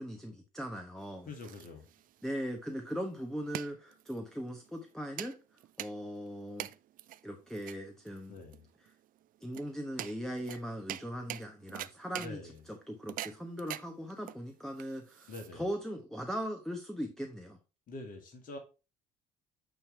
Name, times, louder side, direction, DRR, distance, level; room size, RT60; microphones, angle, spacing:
voice 1, 0.0-1.3 2.2-6.7 7.2-8.4 8.8-8.9 9.4-17.6, equal, ahead, 2 dB, 1.0 m, -39 dB
sound 1, 1.0-15.9, right 13 dB, 40° right, 0.4 m, -45 dB
voice 2, 1.2-1.9 8.3-8.6 12.2-12.6 15.3-15.7 17.9-18.6, left 2 dB, 40° left, 4 dB, 1.8 m, -45 dB
8.9 x 3.2 x 4.5 m, 0.31 s
figure-of-eight pair, 60°, 21 cm